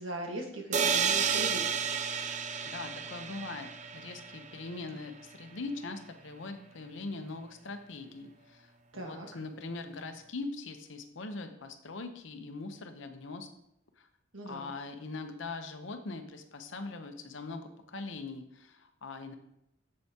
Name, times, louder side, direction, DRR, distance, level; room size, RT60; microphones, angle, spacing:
voice 1, 0.0-1.7 8.9-9.4 14.3-14.7, right 1 dB, 80° right, 1 dB, 1.5 m, -40 dB
sound 1, 0.7-4.5, right 6 dB, 35° right, 0.5 m, -31 dB
voice 2, 2.7-13.5 14.5-19.3, left 3 dB, 65° left, 7 dB, 0.8 m, -41 dB
7.9 x 7.6 x 2.9 m, 0.79 s
head